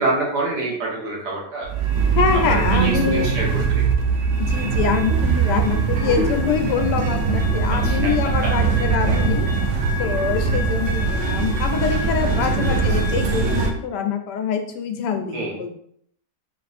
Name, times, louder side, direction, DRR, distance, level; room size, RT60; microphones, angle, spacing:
voice 1, 0.0-1.7 2.5-4.1 7.7-8.1 8.4-8.5 10.0-10.2 12.7-13.0 15.3-15.6, right 2 dB, 80° right, -2 dB, 1.8 m, -27 dB
sound 1, 1.6-13.7, right 4 dB, 65° right, 0.8 m, -21 dB
voice 2, 2.1-3.3 4.4-9.5 10.0-15.8, left 7 dB, 85° left, 6 dB, 1.2 m, -24 dB
3.8 x 2.6 x 4.1 m, 0.67 s
omnidirectional pair, 1.8 m